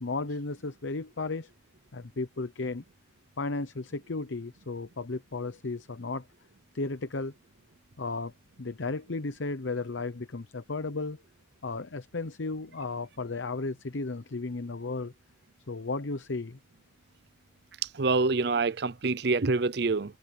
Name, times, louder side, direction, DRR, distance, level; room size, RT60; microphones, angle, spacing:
voice 1, 0.0-1.5 1.9-2.8 3.4-6.2 6.7-7.3 8.0-8.3 8.6-11.2 11.6-15.1 15.7-16.6, left 3 dB, 80° left, 0.9 m, -34 dB
voice 2, 17.9-20.2, right 3 dB, 60° right, 0.6 m, -26 dB
head